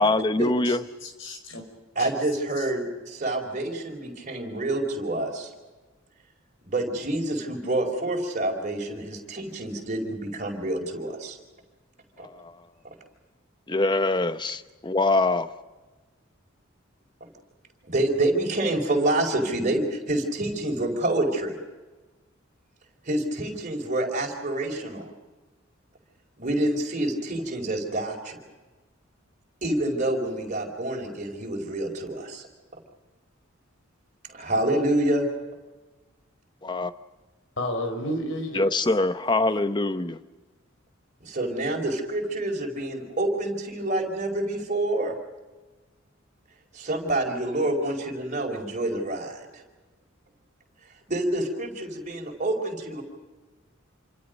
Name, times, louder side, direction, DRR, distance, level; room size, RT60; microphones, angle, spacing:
voice 1, 0.0-0.8 12.4-12.5 13.7-15.5 36.6-36.9 38.5-40.2, left 2 dB, 20° left, 11 dB, 0.9 m, -23 dB
voice 2, 0.6-1.6 2.0-2.1 2.6-2.7 37.6-38.7, left 1 dB, 65° left, 5 dB, 4.7 m, -32 dB
voice 3, 1.9-5.5 6.6-11.4 12.2-12.3 17.2-17.3 17.9-21.6 23.0-25.1 26.4-28.4 29.6-32.4 34.3-35.3 41.2-45.1 46.7-49.6 51.1-53.0, right 1 dB, 40° right, 1 dB, 4.9 m, -27 dB
28.0 x 26.0 x 5.3 m, 1.2 s
head